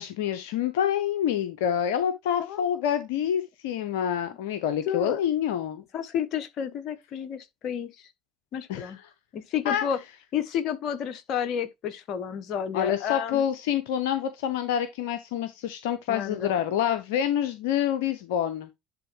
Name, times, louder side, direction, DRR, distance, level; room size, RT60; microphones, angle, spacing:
voice 1, 0.0-5.8 8.7-9.0 9.6-9.9 12.7-18.7, left 9 dB, 80° left, 0.7 m, -27 dB
voice 2, 4.9-5.2 5.9-8.1 8.5-9.0 9.3-10.0 10.3-13.4 16.1-16.6, left 8 dB, 60° left, 1.3 m, -31 dB
10.5 x 3.6 x 3.0 m
hypercardioid pair, 70°, 0 cm